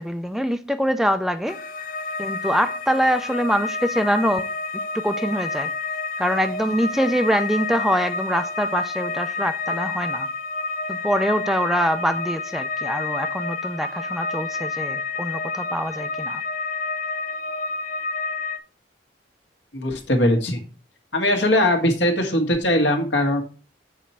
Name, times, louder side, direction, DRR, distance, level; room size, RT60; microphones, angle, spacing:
voice 1, 0.0-1.6 2.2-4.5 4.9-5.7 6.2-10.3 10.9-16.4, equal, ahead, 0.4 m, -24 dB
sound 1, 1.5-18.6, left 3 dB, 50° left, 0.6 m, -29 dB
voice 2, 19.7-20.6 21.1-23.4, left 1 dB, 75° left, 1.6 m, -20 dB
7.3 x 4.3 x 5.5 m
head